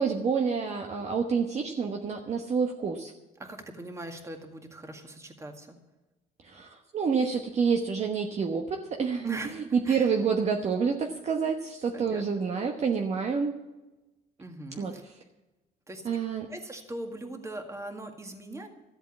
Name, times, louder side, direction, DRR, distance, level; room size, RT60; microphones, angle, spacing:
voice 1, 0.0-3.1 6.4-13.6 14.8-14.9 16.0-16.5, right 5 dB, 40° right, 3 dB, 1.1 m, -28 dB
voice 2, 3.4-5.7 9.2-10.1 11.9-12.2 14.4-15.0 15.9-16.1 16.5-18.7, right 1 dB, 15° right, 4 dB, 2.0 m, -40 dB
13.5 x 8.2 x 8.4 m, 1.1 s
cardioid pair, 110°, 17 cm